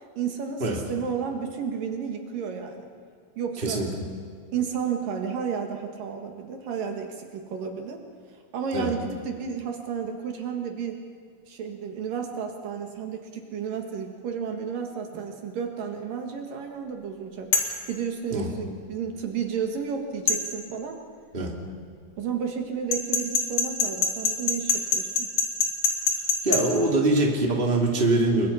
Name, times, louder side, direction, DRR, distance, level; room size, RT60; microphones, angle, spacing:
voice 1, 0.0-2.9 3.4-3.8 4.5-8.0 8.5-11.0 11.5-17.5 17.9-21.0 22.2-25.3, right 6 dB, 70° right, 3 dB, 3.3 m, -32 dB
voice 2, 3.6-3.9 8.7-8.9 18.3-18.5 21.3-21.5 26.4-28.5, right 2 dB, 15° right, 0 dB, 2.9 m, -23 dB
sound 1, 17.5-17.8 20.3-20.4 22.9-26.6, left 5 dB, 60° left, 4.1 m, -23 dB
29.5 x 22.5 x 5.7 m, 2.1 s
omnidirectional pair, 4.2 m